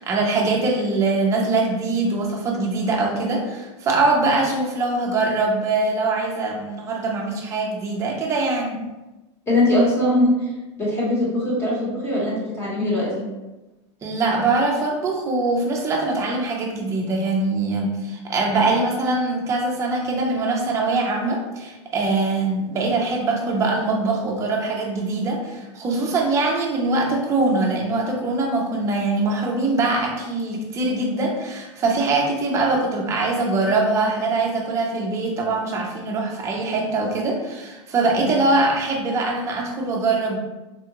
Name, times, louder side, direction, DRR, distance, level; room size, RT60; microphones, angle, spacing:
voice 1, 0.0-8.8 14.0-40.4, right 3 dB, 20° right, -1 dB, 0.5 m, -22 dB
voice 2, 9.5-10.3 10.8-13.3 38.2-38.3, left 1 dB, 15° left, -6 dB, 1.1 m, -21 dB
3.6 x 2.3 x 2.9 m, 1.1 s
supercardioid pair, 150°, 16 cm